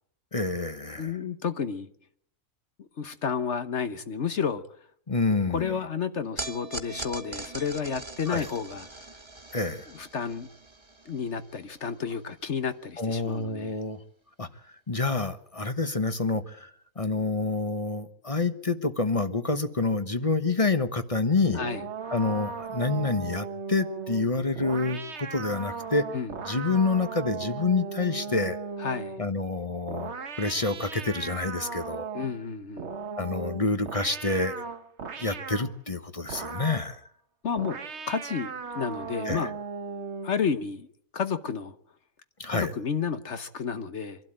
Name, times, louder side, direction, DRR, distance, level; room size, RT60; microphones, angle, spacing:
voice 1, 0.3-1.2 5.1-5.8 8.3-8.5 9.5-9.9 13.0-14.0 14.4-14.5 14.9-16.7 17.0-21.6 22.1-26.0 26.5-28.6 29.2-32.1 33.2-34.6 35.2-37.0 39.2-39.5 42.4-42.7, left 3 dB, 25° left, 1.0 m, -28 dB
voice 2, 1.0-1.9 2.8-4.6 5.5-8.9 9.9-10.5 11.1-13.8 21.5-21.8 26.1-26.3 28.8-29.2 32.1-32.9 37.4-37.8 38.1-39.5 40.2-41.7 42.5-44.2, left 6 dB, 55° left, 1.3 m, -31 dB
sound 1, 6.4-12.8, right 3 dB, 20° right, 1.4 m, -42 dB
sound 2, 21.5-29.3 29.9-32.4 32.8-35.7 36.3-36.9 37.6-40.4, right 5 dB, 55° right, 1.4 m, -37 dB
25.0 x 12.0 x 8.9 m
omnidirectional pair, 1.5 m